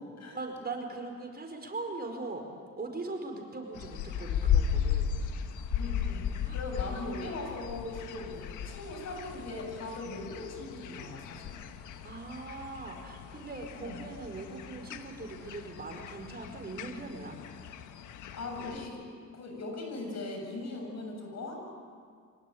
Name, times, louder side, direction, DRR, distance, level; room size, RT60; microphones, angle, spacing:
voice 1, 0.3-2.5 2.8-5.1 6.4-6.6 8.2-8.3 12.0-17.4, right 3 dB, 30° right, 3 dB, 4.7 m, -40 dB
sound 1, 3.7-18.9, left 8 dB, 85° left, 1.4 m, -36 dB
voice 2, 5.7-11.6 13.8-14.0 18.3-19.0 19.3-21.5, left 2 dB, 60° left, 2 dB, 7.5 m, -39 dB
25.0 x 18.5 x 9.3 m, 2.1 s
cardioid pair, 90°, 30 cm